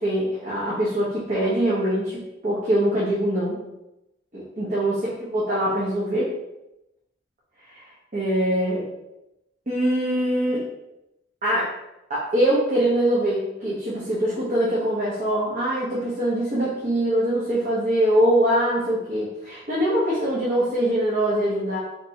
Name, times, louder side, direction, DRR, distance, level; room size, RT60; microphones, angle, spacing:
voice 1, 0.0-3.6 4.3-6.3 7.7-8.9 9.7-10.6 11.4-11.7 12.1-21.8, right 1 dB, 40° right, -7 dB, 0.9 m, -23 dB
4.3 x 3.3 x 2.8 m, 0.91 s
head